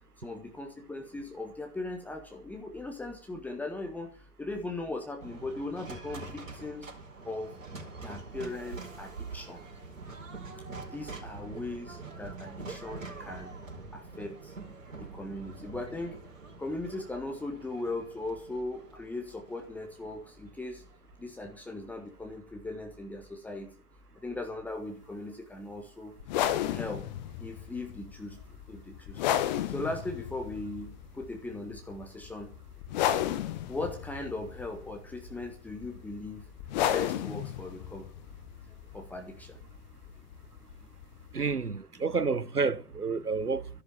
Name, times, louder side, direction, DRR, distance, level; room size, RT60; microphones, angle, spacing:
voice 1, 0.2-4.1 4.4-6.9 7.3-7.5 8.0-9.6 10.9-13.5 13.9-14.5 15.1-16.2 16.6-20.8 21.2-23.7 24.2-26.1 26.7-27.0 27.4-28.4 28.7-29.2 29.7-32.5 33.7-36.4 36.9-38.1 38.9-39.6, left 2 dB, 5° left, 1.3 m, -38 dB
sound 1, 5.2-21.4, right 3 dB, 60° right, 4.6 m, -45 dB
sound 2, 26.2-41.5, left 11 dB, 30° left, 1.3 m, -34 dB
voice 2, 41.3-43.7, right 4 dB, 85° right, 1.1 m, -29 dB
13.5 x 11.5 x 7.2 m
figure-of-eight pair, 120°, 45 cm